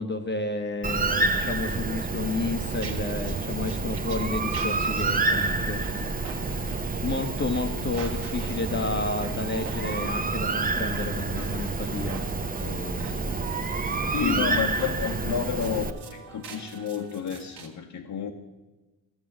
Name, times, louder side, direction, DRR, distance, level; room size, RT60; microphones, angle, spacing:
voice 1, 0.0-5.8 7.0-12.2 12.5-14.6, left 2 dB, 25° left, 6 dB, 1.0 m, -31 dB
Bird, 0.8-15.9, right 3 dB, 20° right, 0.8 m, -29 dB
sound 1, 2.7-17.7, right 5 dB, 75° right, 1.7 m, -45 dB
voice 2, 14.1-15.8 16.1-18.3, left 7 dB, 55° left, 1 dB, 1.1 m, -30 dB
12.5 x 7.3 x 7.4 m, 1.2 s
supercardioid pair, 65°, 40 cm